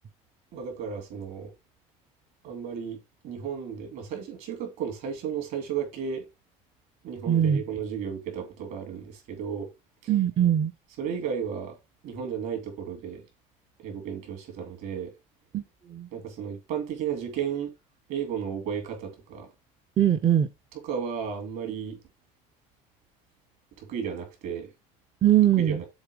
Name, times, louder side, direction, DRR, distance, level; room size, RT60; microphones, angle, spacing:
voice 1, 0.5-1.5 2.4-6.3 7.0-9.7 10.0-10.1 11.0-11.8 12.0-13.2 13.8-15.1 16.1-17.7 18.1-19.5 20.8-22.0 23.8-24.7 25.6-25.8, right 7 dB, 65° right, 2.9 m, -34 dB
voice 2, 7.3-7.6 10.1-10.7 15.5-16.1 20.0-20.5 25.2-25.8, right 10 dB, 30° right, 0.5 m, -22 dB
7.2 x 3.2 x 5.0 m
cardioid pair, 130°, 16 cm